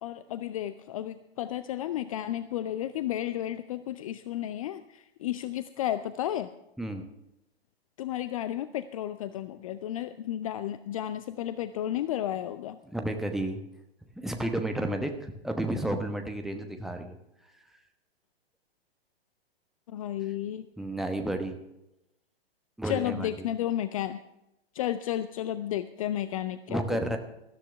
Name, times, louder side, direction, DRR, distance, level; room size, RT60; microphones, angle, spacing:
voice 1, 0.0-6.5 8.0-12.8 19.9-20.7 22.8-24.2 24.7-27.2, left 12 dB, 35° left, 13 dB, 0.5 m, -32 dB
voice 2, 12.8-13.6 14.2-17.2 20.8-21.6 22.8-23.3 26.7-27.2, right 1 dB, ahead, 4 dB, 1.1 m, -31 dB
19.5 x 13.0 x 3.4 m, 0.88 s
figure-of-eight pair, 110°, 31 cm